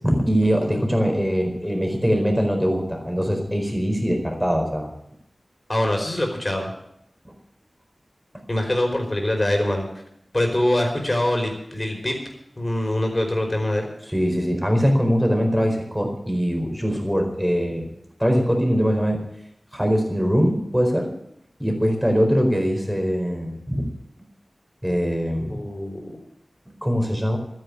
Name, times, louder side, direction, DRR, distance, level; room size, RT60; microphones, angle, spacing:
voice 1, 0.0-4.9 14.1-17.9 18.2-19.2 19.7-21.1 21.6-23.9 24.8-25.6 26.8-27.4, equal, 5° right, 3 dB, 4.5 m, -22 dB
voice 2, 5.7-6.7 8.5-9.8 10.3-12.2 12.6-13.9 25.5-26.2, left 1 dB, 30° left, 2 dB, 4.9 m, -23 dB
12.5 x 10.5 x 8.6 m, 0.76 s
wide cardioid pair, 60°, 0 cm